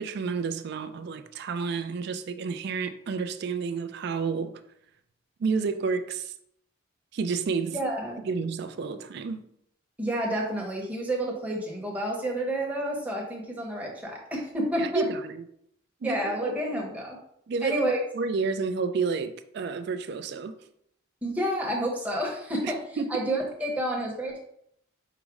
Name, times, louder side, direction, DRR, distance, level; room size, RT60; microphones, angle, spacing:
voice 1, 0.0-4.5 5.4-6.3 7.1-7.8 8.2-9.4 14.8-15.4 16.0-16.6 17.5-17.8 18.1-20.5 22.6-23.3, right 5 dB, 55° right, 0.3 m, -30 dB
voice 2, 7.7-8.2 10.0-15.1 16.0-17.2 17.6-18.0 21.2-22.8 23.1-24.4, right 1 dB, 5° right, 0.8 m, -29 dB
4.8 x 2.1 x 4.7 m
head